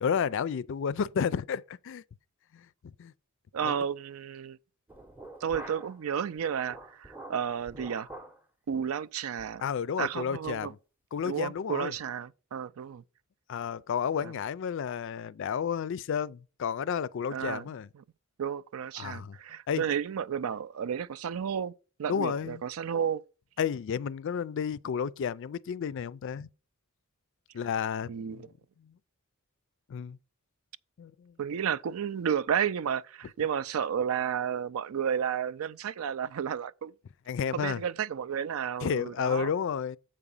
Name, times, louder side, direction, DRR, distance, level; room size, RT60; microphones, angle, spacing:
voice 1, 0.0-2.0 2.5-3.1 3.6-3.7 9.6-10.8 11.1-11.9 13.5-17.9 19.0-19.4 19.7-19.8 22.1-22.6 23.6-26.5 27.5-28.5 28.8-29.0 29.9-30.2 31.0-31.4 37.3-37.8 38.8-40.0, left 7 dB, 60° left, 0.4 m, -31 dB
voice 2, 3.5-4.6 5.4-8.1 8.7-9.6 10.0-10.7 11.2-13.0 14.2-14.3 17.3-17.7 18.4-21.7 22.0-23.2 28.1-28.5 31.4-36.9 37.5-39.5, right 8 dB, 75° right, 0.4 m, -32 dB
sound 1, 4.9-6.0 6.4-8.4 8.7-8.9 9.4-9.6 10.0-10.1 10.5-10.7, right 1 dB, 10° right, 0.7 m, -46 dB
7.7 x 4.9 x 5.4 m
head